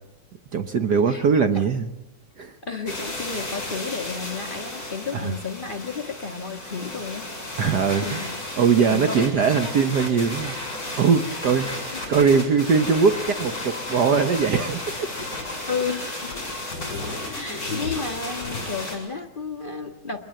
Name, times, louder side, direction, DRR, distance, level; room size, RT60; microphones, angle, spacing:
voice 1, 0.5-1.9 2.4-2.5 5.1-5.3 7.6-8.2 8.6-10.6 11.0-15.1, right 6 dB, 80° right, 7 dB, 0.9 m, -21 dB
voice 2, 2.6-8.4 8.8-9.2 11.2-11.4 11.9-12.0 15.7-16.4 17.2-20.2, left 5 dB, 50° left, 4 dB, 0.6 m, -32 dB
sound 1, 2.9-19.0, left 2 dB, 30° left, 7.7 m, -33 dB
24.0 x 21.5 x 7.7 m, 0.88 s
omnidirectional pair, 3.3 m